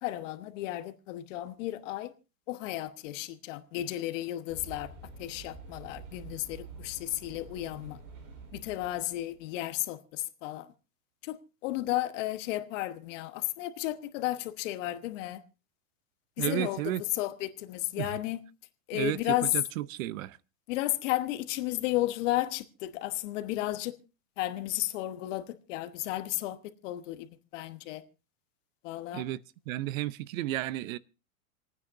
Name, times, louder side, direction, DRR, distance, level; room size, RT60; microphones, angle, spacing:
voice 1, 0.0-2.1 2.5-4.9 5.2-8.0 8.5-10.7 11.2-15.4 16.4-18.4 18.9-19.5 20.7-24.0 24.4-28.0 28.8-29.2, left 15 dB, 55° left, 1.2 m, -33 dB
sound 1, 4.5-9.4, right 4 dB, 40° right, 3.9 m, -48 dB
voice 2, 16.4-17.0 18.0-18.2 18.9-19.2 19.5-20.4 29.1-29.4 29.7-31.0, right 15 dB, 65° right, 0.6 m, -32 dB
28.0 x 9.5 x 2.6 m
supercardioid pair, 135°, 43 cm